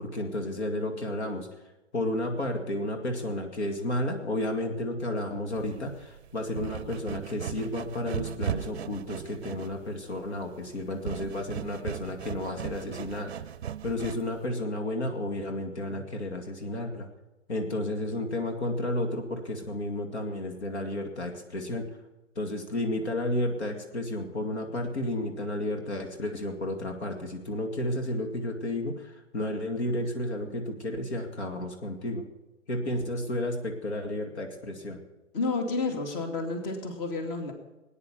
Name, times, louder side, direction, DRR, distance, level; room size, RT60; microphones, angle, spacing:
voice 1, 0.0-1.5 1.9-13.3 13.8-17.1 17.5-21.9 22.4-32.3 32.7-35.0, left 1 dB, 60° left, 4 dB, 2.4 m, -32 dB
sound 1, 5.5-14.4, right 9 dB, 60° right, 0.6 m, -38 dB
voice 2, 35.3-37.5, left 3 dB, 35° left, 5 dB, 2.6 m, -30 dB
19.0 x 9.8 x 7.0 m, 1.0 s
figure-of-eight pair, 120°, 37 cm